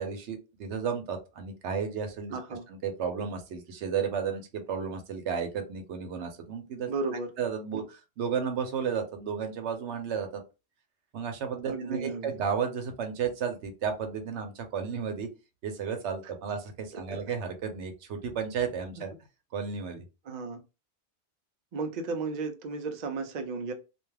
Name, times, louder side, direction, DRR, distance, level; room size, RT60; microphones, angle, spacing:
voice 1, 0.0-2.4 2.7-6.9 7.4-10.4 11.1-15.3 15.6-19.1 19.5-20.0, right 6 dB, 75° right, 0.9 m, -33 dB
voice 2, 2.3-2.6 6.9-7.3 11.7-12.3 16.9-17.2 20.3-20.6 21.7-23.7, right 4 dB, 55° right, 0.5 m, -34 dB
2.4 x 2.2 x 3.1 m
omnidirectional pair, 1.2 m